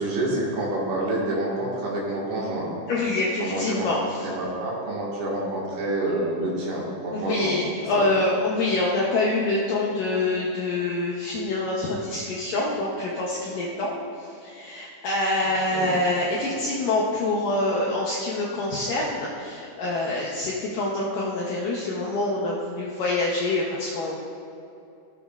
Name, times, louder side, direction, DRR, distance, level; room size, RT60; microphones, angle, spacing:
voice 1, 0.0-2.7 3.4-7.6 7.9-8.1 15.7-15.9, right 1 dB, 70° right, -5 dB, 3.5 m, -28 dB
voice 2, 2.9-4.3 7.1-13.9 14.2-24.2, left 2 dB, 75° left, -5 dB, 2.0 m, -26 dB
15.5 x 6.8 x 2.4 m, 2.7 s
omnidirectional pair, 4.8 m